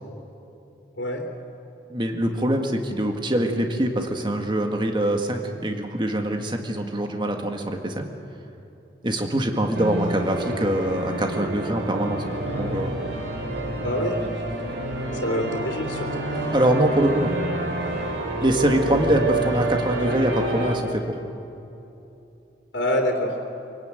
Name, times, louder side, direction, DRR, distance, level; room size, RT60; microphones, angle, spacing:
voice 1, 1.9-8.0 9.0-12.3 12.6-13.0 16.5-17.3 18.4-21.2, right 1 dB, 25° right, 4 dB, 1.8 m, -24 dB
sound 1, 9.7-20.8, right 2 dB, 90° right, 3.7 m, -28 dB
voice 2, 13.8-14.1 15.2-16.2 22.7-23.4, left 1 dB, 80° left, 0 dB, 3.1 m, -25 dB
26.0 x 18.0 x 9.2 m, 2.9 s
head